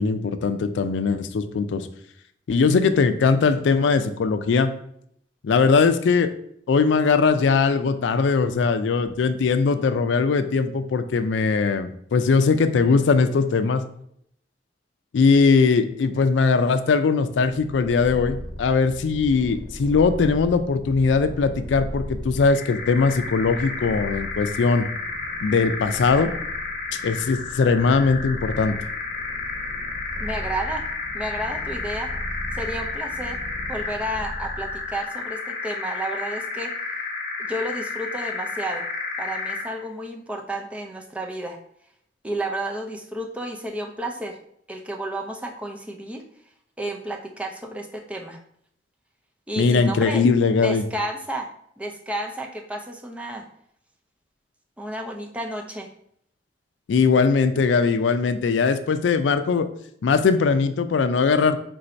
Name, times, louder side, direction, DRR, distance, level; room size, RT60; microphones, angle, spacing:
voice 1, 0.0-1.9 2.5-4.7 5.4-6.3 6.7-13.8 15.1-24.9 25.4-26.3 26.9-28.8 49.6-50.8 56.9-59.7 60.0-61.6, left 4 dB, 90° left, 10 dB, 0.4 m, -20 dB
Purr, 17.9-35.1, equal, 20° left, 0.9 m, -38 dB
sound 1, 22.4-39.8, left 4 dB, 55° left, 0.8 m, -32 dB
voice 2, 30.2-30.8 31.1-32.1 32.5-33.4 33.7-36.7 37.4-38.9 39.2-41.6 42.2-44.4 44.7-46.2 46.8-48.4 49.5-50.2 50.6-51.5 51.8-53.4 54.8-55.9, right 1 dB, 5° right, 2 dB, 0.4 m, -31 dB
3.8 x 2.6 x 4.3 m, 0.68 s
head